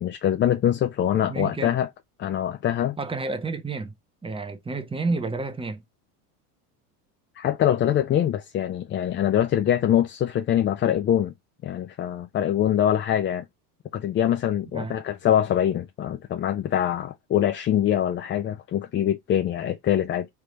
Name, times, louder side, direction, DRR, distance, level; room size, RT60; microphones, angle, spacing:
voice 1, 0.0-1.9 2.2-3.0 7.4-11.3 11.6-13.5 13.9-20.3, left 10 dB, 25° left, 0.4 m, -24 dB
voice 2, 1.3-1.7 3.0-3.9 4.2-5.8 14.7-15.0, right 3 dB, 10° right, 0.8 m, -30 dB
3.8 x 3.4 x 3.2 m
hypercardioid pair, 85°, 47 cm